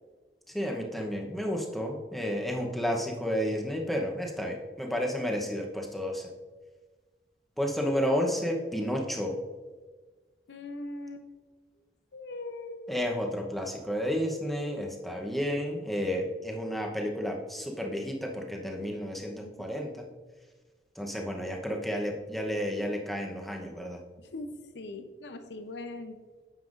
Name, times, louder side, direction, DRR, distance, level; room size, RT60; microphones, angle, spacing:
voice 1, 0.5-6.3 7.6-9.4 12.9-20.1 21.0-24.0, equal, ahead, 0 dB, 0.9 m, -31 dB
voice 2, 10.5-11.2 12.1-12.9 19.3-19.7 24.2-26.2, left 2 dB, 80° left, 8 dB, 0.7 m, -41 dB
9.5 x 6.9 x 2.6 m, 1.4 s
head